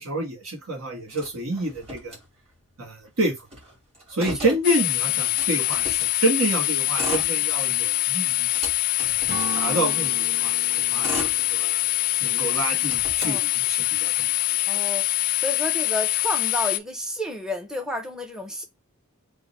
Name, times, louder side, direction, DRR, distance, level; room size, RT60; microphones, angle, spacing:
voice 1, 0.0-2.1 2.8-3.3 4.1-8.5 9.0-9.2 9.5-10.6 10.9-11.8 12.2-14.3, right 1 dB, 80° right, 1.5 m, -28 dB
Motor vehicle (road), 1.1-2.7 3.0-3.1 3.4-6.2 6.8-7.9 8.3-10.1 10.7-12.1 12.5-14.1, equal, 30° right, 1.8 m, -37 dB
voice 2, 4.2-4.6 13.2-13.4 14.7-15.1 15.4-18.6, left 1 dB, 5° right, 0.6 m, -31 dB
sound 1, 4.6-16.8, left 17 dB, 40° left, 0.4 m, -24 dB
Acoustic guitar / Strum, 9.3-12.9, right 3 dB, 45° right, 1.0 m, -38 dB
3.6 x 2.6 x 4.1 m
head